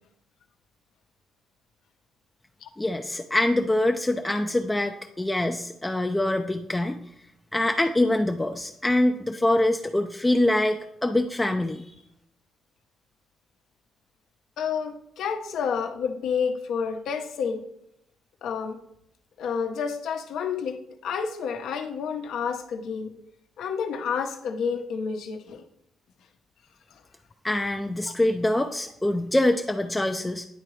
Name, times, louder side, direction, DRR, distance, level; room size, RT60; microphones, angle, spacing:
voice 1, 2.8-7.0 7.5-11.9 27.4-30.5, left 1 dB, 15° left, 5 dB, 0.4 m, -24 dB
voice 2, 14.6-17.6 18.4-18.8 19.4-23.1 23.6-25.6 28.1-28.2, left 6 dB, 75° left, 6 dB, 0.8 m, -30 dB
10.0 x 3.7 x 3.1 m, 0.76 s
cardioid pair, 90°, 0 cm